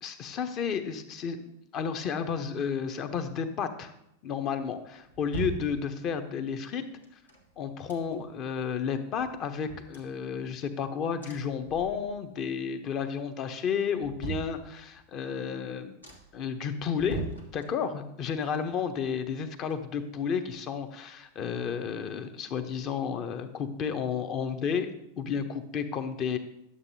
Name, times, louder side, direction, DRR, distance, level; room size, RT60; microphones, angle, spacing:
voice 1, 0.0-3.9 4.2-6.9 7.6-16.0 16.3-26.4, left 6 dB, 35° left, 9 dB, 0.7 m, -32 dB
sound 1, 4.6-6.3 7.0-8.5 8.8-8.9 9.2-10.8 11.2-12.4 12.7-13.2 13.7-15.1 15.6-15.7 16.0-16.5 16.9-18.1 18.4-20.2 20.5-20.6, right 4 dB, 80° left, 1.4 m, -42 dB
11.0 x 7.2 x 2.7 m, 0.81 s
figure-of-eight pair, 90°, 0 cm